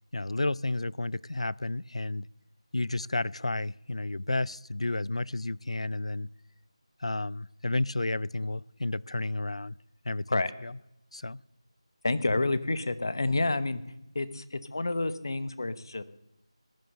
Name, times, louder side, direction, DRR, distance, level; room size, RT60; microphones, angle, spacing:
voice 1, 0.1-2.3 2.7-6.3 7.0-9.8 10.0-10.8 11.1-11.4, left 2 dB, 80° left, 0.5 m, -32 dB
voice 2, 12.0-13.8 14.1-16.0, left 2 dB, 45° left, 1.0 m, -29 dB
18.0 x 11.0 x 6.7 m
figure-of-eight pair, 175°, 3 cm